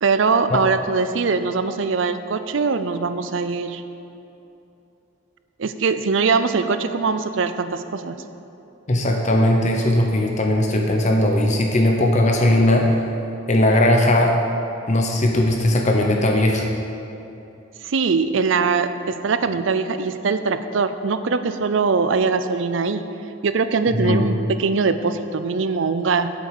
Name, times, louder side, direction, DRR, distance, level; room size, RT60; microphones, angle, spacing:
voice 1, 0.0-3.8 5.6-8.2 17.8-23.0 23.4-24.3 24.6-26.3, right 4 dB, 70° right, 11 dB, 0.5 m, -22 dB
voice 2, 8.9-12.9 13.5-14.4 14.9-16.7 24.0-24.3, left 1 dB, 35° left, 1 dB, 0.8 m, -18 dB
8.1 x 8.1 x 6.6 m, 2.8 s
head